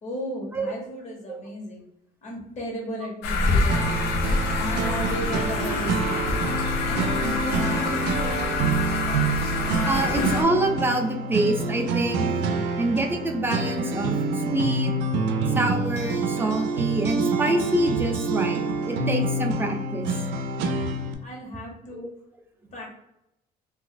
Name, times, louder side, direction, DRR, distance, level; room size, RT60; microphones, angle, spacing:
voice 1, 0.0-1.8 2.2-4.0 4.5-6.5 6.9-8.5 12.7-12.9 21.2-22.1 22.7-22.9, equal, 45° left, -2 dB, 1.3 m, -35 dB
sound 1, 3.2-10.4, left 3 dB, 85° left, 0.6 m, -26 dB
sound 2, 3.7-21.1, right 3 dB, 90° right, 0.5 m, -27 dB
voice 2, 9.9-12.2 12.8-14.9 15.6-20.2 21.9-22.1, right 2 dB, 10° right, 3 dB, 0.5 m, -26 dB
2.6 x 2.4 x 3.8 m, 0.82 s
cardioid pair, 110°, 17 cm